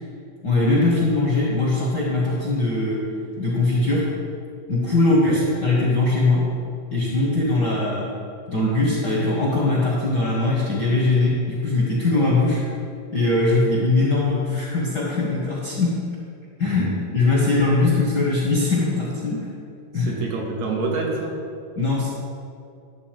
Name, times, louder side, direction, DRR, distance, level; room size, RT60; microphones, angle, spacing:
voice 1, 0.4-3.1 3.4-4.1 4.7-6.5 6.9-8.1 8.5-12.6 13.1-16.0 16.6-19.5 19.9-20.1 21.7-22.1, left 2 dB, 50° left, -5 dB, 1.3 m, -21 dB
voice 2, 19.9-21.4, right 3 dB, 65° right, 0 dB, 2.2 m, -27 dB
12.0 x 4.0 x 7.7 m, 2.4 s
omnidirectional pair, 3.8 m